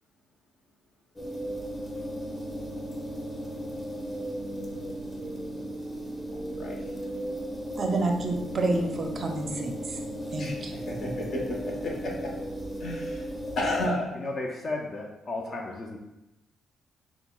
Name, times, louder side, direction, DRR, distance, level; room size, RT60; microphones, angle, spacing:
sound 1, 1.2-13.9, equal, 15° left, 0.8 m, -36 dB
voice 1, 6.3-6.9 10.4-11.6 11.8-12.1 12.8-13.3 13.5-14.1, left 1 dB, 60° left, -2 dB, 0.9 m, -32 dB
voice 2, 7.8-10.0 10.3-10.7, right 2 dB, 45° right, 3 dB, 0.4 m, -29 dB
voice 3, 14.2-16.0, left 2 dB, 45° left, 0 dB, 0.4 m, -34 dB
5.7 x 2.0 x 2.2 m, 0.97 s
cardioid pair, 90°, 0 cm